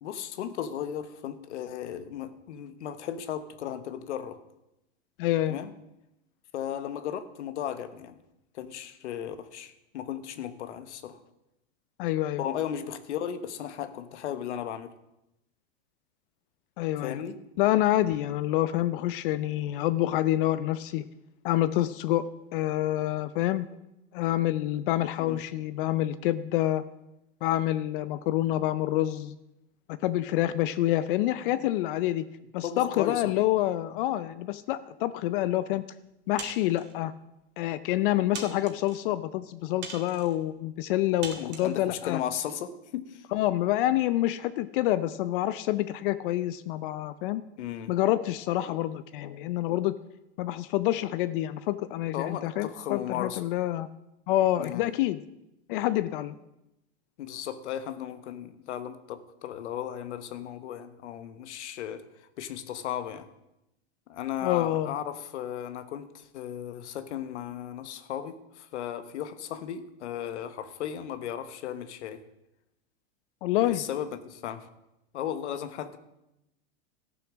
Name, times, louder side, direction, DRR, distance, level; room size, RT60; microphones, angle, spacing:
voice 1, 0.0-4.4 5.5-5.7 6.5-8.2 8.5-11.2 12.4-14.9 17.0-17.4 25.2-25.4 32.6-33.4 41.4-43.3 47.6-47.9 52.1-53.4 54.6-54.9 57.2-63.3 64.1-72.2 73.6-74.7 75.1-76.0, left 10 dB, 90° left, 11 dB, 1.1 m, -36 dB
voice 2, 5.2-5.6 12.0-12.4 16.8-17.2 17.6-21.0 21.4-23.7 24.1-26.8 27.4-29.3 30.0-32.2 32.5-35.8 36.3-37.1 37.6-42.2 43.3-47.4 47.9-49.9 50.4-53.9 54.3-55.2 55.7-56.3 64.4-64.9 73.4-73.8, left 14 dB, 50° left, 15 dB, 0.5 m, -27 dB
sound 1, 36.4-36.9 37.6-37.7 38.3-39.0 39.8-40.3 41.2-41.7, right 6 dB, 30° right, 1.8 m, -41 dB
13.5 x 7.0 x 6.1 m, 0.89 s
supercardioid pair, 150°, 33 cm